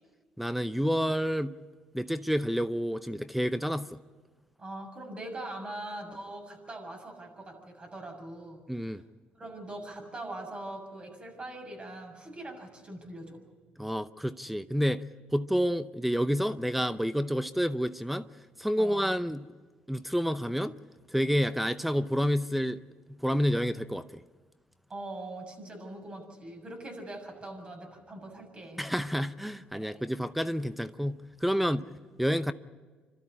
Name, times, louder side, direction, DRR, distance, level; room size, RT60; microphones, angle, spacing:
voice 1, 0.4-1.6 1.9-4.0 8.7-9.0 13.8-15.0 15.3-18.3 18.6-19.5 19.9-20.8 21.1-22.8 23.2-24.2 28.8-31.8 32.2-32.5, equal, 5° right, 0.7 m, -29 dB
voice 2, 4.6-9.0 9.4-13.4 18.8-19.1 24.9-28.9 29.7-30.0 31.5-31.8, right 1 dB, 30° right, 6.9 m, -42 dB
27.0 x 13.0 x 9.9 m
cardioid pair, 80°, 3 cm